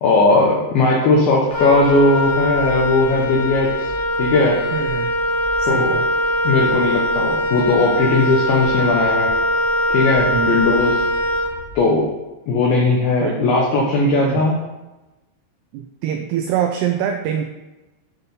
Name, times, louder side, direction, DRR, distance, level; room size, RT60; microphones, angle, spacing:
voice 1, 0.0-3.9 4.2-4.6 5.7-6.0 6.4-9.3 9.9-11.0 11.8-12.1 12.5-14.6, left 2 dB, 75° left, -1 dB, 2.3 m, -17 dB
Wind instrument woodwind instrument, 1.5-11.9, equal, 40° left, 1.8 m, -21 dB
voice 2, 4.7-5.1 5.6-6.1 10.3-10.6 13.2-13.4 14.2-14.5 15.7-17.4, right 9 dB, 85° right, 4 dB, 2.3 m, -24 dB
8.2 x 4.1 x 5.3 m, 1.1 s
omnidirectional pair, 5.2 m